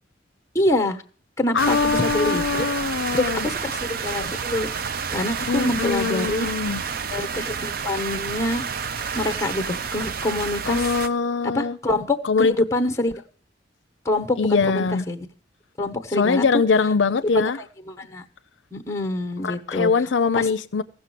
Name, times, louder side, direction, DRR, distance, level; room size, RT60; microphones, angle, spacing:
voice 1, 0.5-1.0 1.4-2.7 3.1-4.7 5.1-6.5 7.1-8.6 9.1-10.8 11.5-13.2 14.0-15.3 15.8-16.4 17.3-17.5 17.9-18.2 18.7-19.9 20.3-20.5, left 1 dB, 15° left, 1.2 m, -25 dB
voice 2, 1.5-3.5 5.5-6.8 10.6-11.8 12.2-12.6 14.4-15.0 16.1-17.6 19.4-20.8, left 5 dB, 75° left, 0.5 m, -22 dB
sound 1, 1.6-11.1, right 6 dB, 50° right, 0.5 m, -29 dB
15.5 x 6.3 x 7.7 m
head